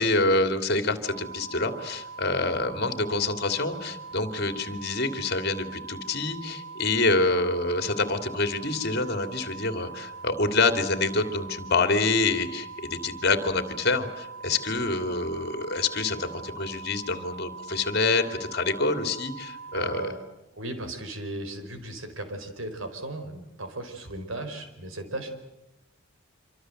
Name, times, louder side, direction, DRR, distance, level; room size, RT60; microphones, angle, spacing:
voice 1, 0.0-20.1, left 3 dB, 50° left, 8 dB, 2.8 m, -26 dB
sound 1, 1.0-20.1, right 4 dB, 45° right, 6.4 m, -42 dB
voice 2, 19.7-20.2 20.5-25.3, right 1 dB, 80° right, 8 dB, 4.6 m, -36 dB
26.5 x 25.5 x 7.9 m, 0.90 s
head